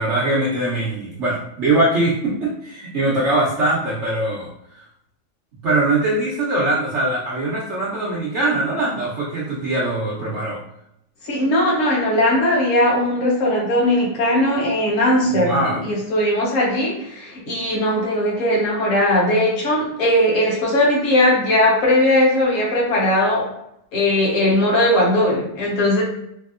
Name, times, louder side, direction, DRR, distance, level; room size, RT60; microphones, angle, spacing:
voice 1, 0.0-4.5 5.6-10.6 15.3-15.8, right 2 dB, 65° right, -6 dB, 0.7 m, -21 dB
voice 2, 11.2-23.5 23.9-26.0, left 1 dB, 45° left, -4 dB, 1.3 m, -18 dB
4.5 x 2.7 x 2.4 m, 0.77 s
omnidirectional pair, 2.1 m